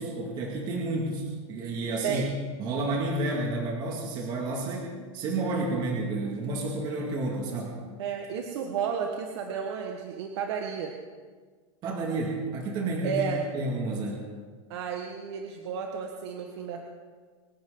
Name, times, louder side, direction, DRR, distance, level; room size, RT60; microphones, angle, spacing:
voice 1, 0.0-2.2 2.6-7.8 11.8-13.2 13.5-14.2, right 2 dB, 25° right, -1 dB, 2.3 m, -30 dB
voice 2, 8.0-10.9 13.0-13.4 14.7-16.8, right 7 dB, 60° right, 2 dB, 1.5 m, -32 dB
26.0 x 11.5 x 3.9 m, 1.5 s
supercardioid pair, 170°, 16 cm